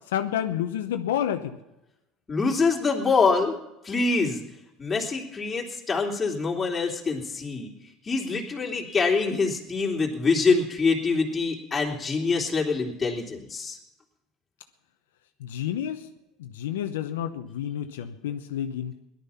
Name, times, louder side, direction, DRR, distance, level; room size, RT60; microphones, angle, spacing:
voice 1, 0.1-1.6 15.4-16.1 16.4-18.9, left 10 dB, 90° left, 6 dB, 0.9 m, -29 dB
voice 2, 2.3-3.5 3.8-4.4 4.8-7.7 8.0-13.8, left 4 dB, 20° left, -1 dB, 3.5 m, -25 dB
17.5 x 12.0 x 5.8 m, 0.91 s
supercardioid pair, 90°, 0 cm